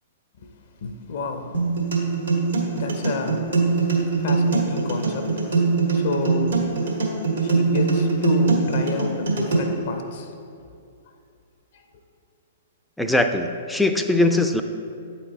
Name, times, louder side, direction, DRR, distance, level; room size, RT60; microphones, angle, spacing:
voice 1, 0.8-1.6 2.7-6.6 7.4-10.3 11.7-11.8, left 3 dB, 55° left, 5 dB, 0.6 m, -30 dB
sound 1, 1.5-9.5, right 4 dB, 75° right, 1.5 m, -22 dB
voice 2, 13.0-14.6, left 2 dB, 5° left, 6 dB, 0.4 m, -21 dB
8.6 x 4.5 x 4.0 m, 2.4 s
figure-of-eight pair, 110°, 0 cm